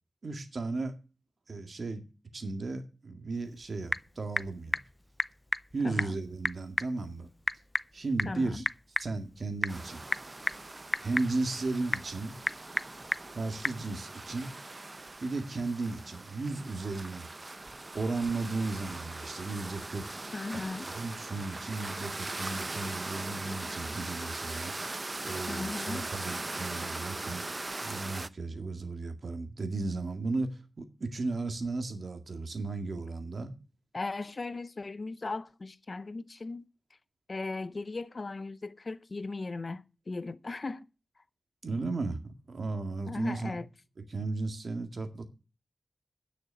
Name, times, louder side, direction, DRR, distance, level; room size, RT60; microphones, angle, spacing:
voice 1, 0.2-0.9 1.5-2.0 2.3-4.8 5.7-7.3 7.9-8.7 9.0-10.0 11.0-12.3 13.3-14.5 15.2-17.3 17.9-20.1 20.5-20.6 20.9-24.7 25.2-27.5 27.8-33.5 41.6-43.6 44.1-45.2, right 3 dB, 70° right, 2.0 m, -35 dB
Typing / Telephone, 3.3-13.9, left 1 dB, 25° left, 0.5 m, -36 dB
voice 2, 8.3-8.6 20.3-20.9 25.5-26.1 33.9-36.6 37.3-40.9 43.1-43.7, left 3 dB, 55° left, 0.7 m, -37 dB
sound 1, 9.7-28.3, right 2 dB, 40° right, 0.6 m, -40 dB
9.6 x 6.5 x 8.8 m
cardioid pair, 50°, 0 cm